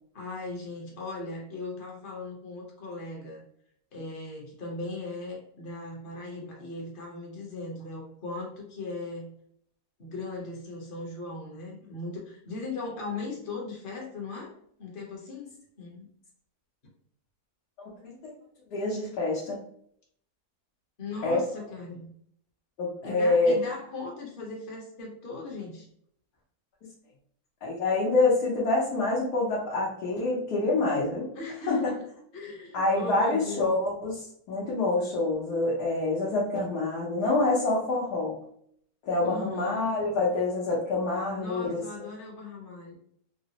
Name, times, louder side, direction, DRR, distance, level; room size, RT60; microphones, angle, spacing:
voice 1, 0.1-3.4 3.9-9.3 10.0-14.5 14.8-16.1 21.0-22.1 23.0-25.9 31.3-32.1 32.3-33.8 39.2-39.9 41.3-43.0, left 3 dB, 40° left, -1 dB, 0.9 m, -38 dB
voice 2, 18.0-18.3 18.7-19.6 21.2-21.4 22.8-23.6 27.6-31.3 31.7-31.9 32.7-34.2 34.5-38.4 39.0-41.8, left 2 dB, 90° left, -5 dB, 1.4 m, -26 dB
3.7 x 2.0 x 2.8 m, 0.67 s
omnidirectional pair, 1.7 m